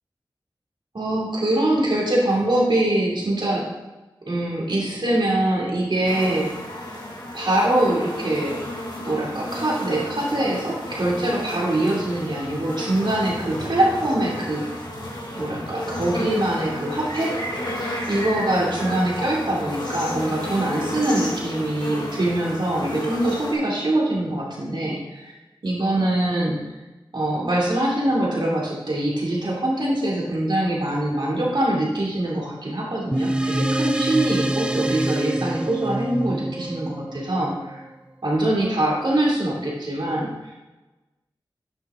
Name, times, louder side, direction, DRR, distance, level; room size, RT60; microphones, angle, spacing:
voice 1, 0.9-3.7 4.3-6.5 7.3-8.6 9.0-14.6 15.3-17.3 18.1-25.3 25.6-26.6 27.1-37.8 38.2-40.5, right 1 dB, 65° right, -4 dB, 2.7 m, -23 dB
sound 1, 6.0-23.5, left 1 dB, 60° left, 2.7 m, -32 dB
sound 2, 33.1-37.9, right 1 dB, 10° right, 0.5 m, -26 dB
9.5 x 6.2 x 3.8 m, 1.1 s
wide cardioid pair, 50°, 9 cm